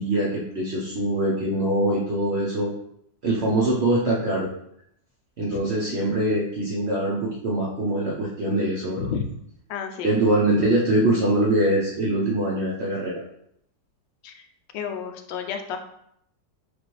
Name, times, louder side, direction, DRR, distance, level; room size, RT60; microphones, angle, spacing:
voice 1, 0.0-2.7 3.2-4.5 5.4-9.1 10.0-13.2, right 1 dB, 75° right, -4 dB, 0.6 m, -23 dB
voice 2, 9.7-10.1 14.2-14.4 14.7-15.8, left 7 dB, 85° left, 5 dB, 1.3 m, -31 dB
4.7 x 2.5 x 3.1 m, 0.73 s
omnidirectional pair, 1.9 m